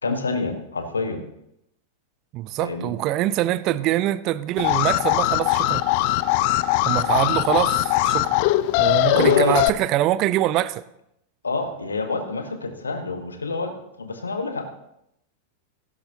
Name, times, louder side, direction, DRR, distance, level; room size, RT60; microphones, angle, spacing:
voice 1, 0.0-1.2 2.6-3.0 9.1-9.6 11.4-14.7, left 4 dB, 75° left, 1.3 m, -27 dB
voice 2, 2.3-5.9 6.8-8.4 8.8-10.8, right 14 dB, 40° right, 0.5 m, -24 dB
Alarm, 4.6-9.7, left 15 dB, 45° left, 0.5 m, -21 dB
16.0 x 12.0 x 2.9 m
figure-of-eight pair, 90°, 0 cm